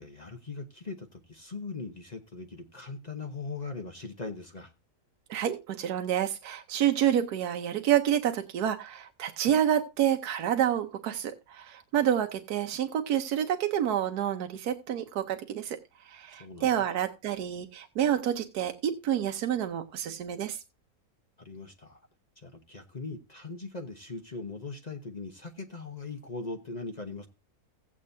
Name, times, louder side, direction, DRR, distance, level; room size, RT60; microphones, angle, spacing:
voice 1, 0.0-4.7 16.3-17.0 21.4-22.0 22.4-27.3, left 3 dB, 30° left, 0.9 m, -40 dB
voice 2, 5.3-15.8 16.0-20.6, right 10 dB, 85° right, 1.3 m, -28 dB
16.0 x 8.5 x 2.6 m
omnidirectional pair, 1.6 m